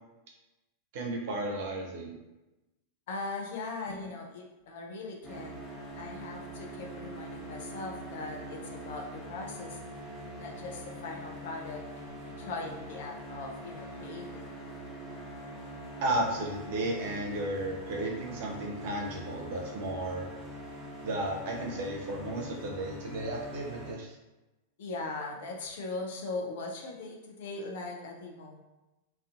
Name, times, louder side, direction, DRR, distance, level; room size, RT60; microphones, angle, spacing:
voice 1, 0.9-2.2 16.0-20.3 21.0-24.2, right 1 dB, 50° right, -1 dB, 0.6 m, -34 dB
voice 2, 3.1-5.6 6.0-9.8 10.4-14.6 24.8-28.6, left 3 dB, 55° left, 1 dB, 0.4 m, -40 dB
sound 1, 5.2-23.9, equal, 15° left, 0.8 m, -43 dB
2.4 x 2.2 x 2.4 m, 1.0 s
figure-of-eight pair, 90°, 0 cm